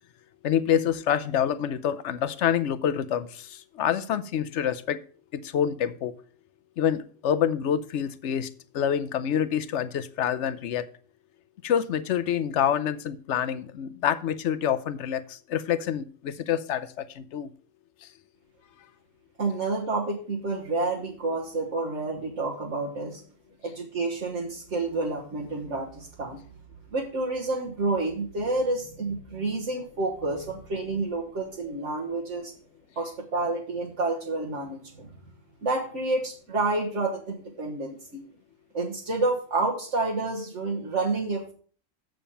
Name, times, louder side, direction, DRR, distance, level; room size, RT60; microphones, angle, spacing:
voice 1, 0.4-5.0 5.3-6.1 6.8-8.5 8.7-10.8 11.6-17.5, left 9 dB, 70° left, 13 dB, 0.9 m, -27 dB
voice 2, 19.4-23.2 23.6-26.4 26.9-32.5 33.0-35.1 35.6-38.2 38.7-41.5, right 3 dB, 65° right, -3 dB, 1.7 m, -29 dB
7.6 x 7.2 x 5.6 m, 0.44 s
omnidirectional pair, 1.3 m